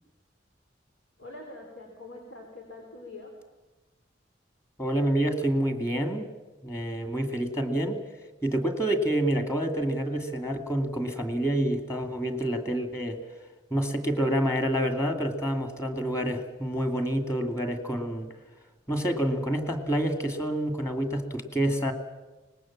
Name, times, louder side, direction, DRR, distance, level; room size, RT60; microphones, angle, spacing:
voice 1, 1.2-3.3, left 2 dB, 90° left, 1 dB, 4.1 m, -44 dB
voice 2, 4.8-6.3 6.6-8.0 8.4-13.2 13.7-18.3 18.9-21.9, right 1 dB, 15° left, 6 dB, 2.3 m, -28 dB
24.5 x 20.0 x 7.4 m, 1.1 s
head